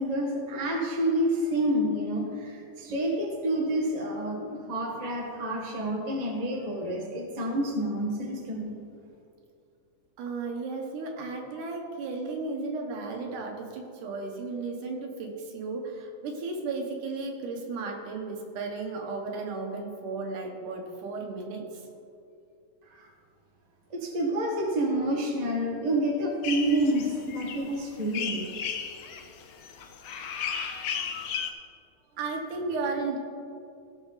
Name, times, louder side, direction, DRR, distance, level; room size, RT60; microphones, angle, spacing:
voice 1, 0.0-8.8 22.9-23.1 23.9-28.5, right 1 dB, 30° right, -1 dB, 0.7 m, -28 dB
voice 2, 10.2-21.9 32.1-33.2, right 3 dB, 90° right, 1 dB, 2.8 m, -34 dB
sound 1, 26.4-31.5, left 7 dB, 90° left, 1.1 m, -35 dB
16.5 x 6.1 x 4.1 m, 2.5 s
omnidirectional pair, 3.5 m